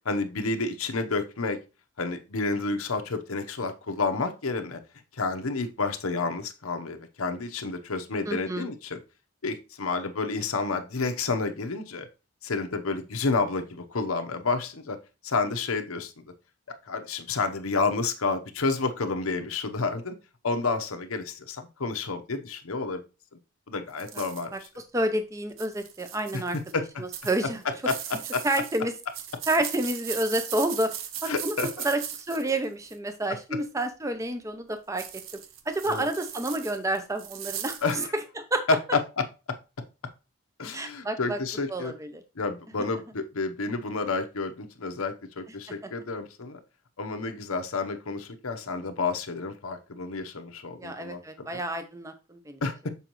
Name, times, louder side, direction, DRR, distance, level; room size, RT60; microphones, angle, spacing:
voice 1, 0.0-1.6 2.0-4.8 5.1-9.0 9.4-12.1 12.4-15.0 15.2-16.1 16.8-20.1 20.4-23.0 23.7-24.7 26.3-26.4 26.7-27.0 27.8-27.9 28.3-28.4 31.3-31.8 33.5-33.6 35.9-36.1 37.8-38.1 40.6-41.9 42.4-46.6 47.0-51.6 52.6-52.9, left 3 dB, 90° left, 6 dB, 0.9 m, -30 dB
voice 2, 8.3-8.7 24.5-24.6 24.9-27.6 28.4-28.9 29.5-35.0 35.7-38.1 38.4-38.6 40.7-41.4 41.7-42.2 50.8-52.6, right 1 dB, 15° right, 8 dB, 0.5 m, -29 dB
sound 1, 24.0-24.7 25.5-26.7 27.1-33.1 35.0-38.0, right 9 dB, 70° right, 0.7 m, -38 dB
6.9 x 4.9 x 3.0 m, 0.30 s
head